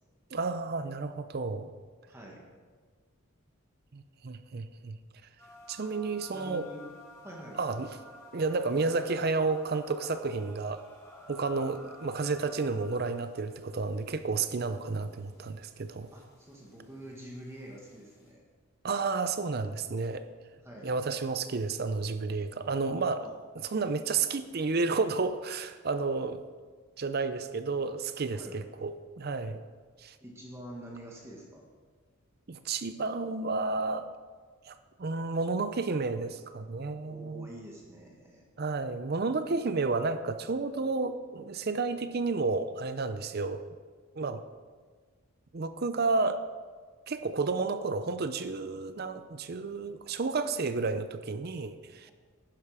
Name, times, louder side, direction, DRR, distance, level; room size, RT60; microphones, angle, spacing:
voice 1, 0.3-1.7 3.9-5.0 5.7-6.7 7.6-7.9 8.3-10.8 11.3-16.1 18.8-20.3 20.8-23.3 23.7-26.4 27.0-29.6 30.0-30.1 32.5-34.1 34.7-37.5 38.6-43.7 44.2-44.4 45.5-46.4 47.1-52.1, right 4 dB, 45° right, 11 dB, 0.5 m, -31 dB
voice 2, 2.1-2.4 6.2-6.8 7.2-7.6 16.1-18.4 20.6-20.9 23.2-23.3 28.3-28.6 30.2-31.6 37.1-38.4, right 1 dB, 15° right, -2 dB, 1.6 m, -46 dB
sound 1, 5.4-18.3, left 1 dB, 15° left, 3.0 m, -53 dB
11.5 x 10.5 x 4.9 m, 1.5 s
head